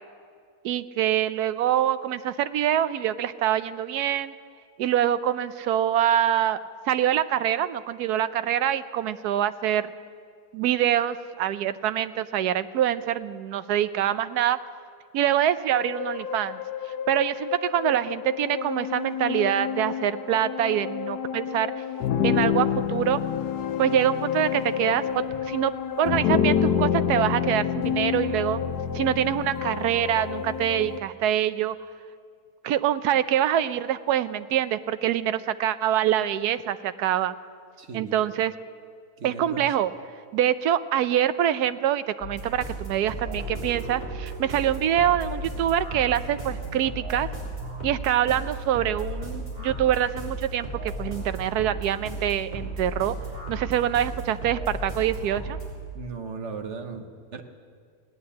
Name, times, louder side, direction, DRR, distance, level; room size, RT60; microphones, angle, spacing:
voice 1, 0.6-4.3 4.8-6.6 6.9-9.9 10.5-14.6 15.1-16.6 17.1-21.7 22.2-23.2 23.8-25.7 26.0-28.6 28.9-31.8 32.6-37.3 37.9-38.5 39.2-39.9 40.3-47.3 47.8-53.2 53.5-55.6, right 11 dB, 80° right, 13 dB, 1.2 m, -25 dB
sound 1, 15.8-31.0, left 8 dB, 85° left, 1.3 m, -28 dB
voice 2, 37.8-38.3 39.2-39.7 43.3-43.4 55.9-57.4, right 4 dB, 50° right, 6 dB, 1.2 m, -37 dB
sound 2, 42.2-55.7, right 1 dB, 25° right, 4.1 m, -35 dB
17.0 x 9.6 x 8.5 m, 2.2 s
omnidirectional pair, 1.7 m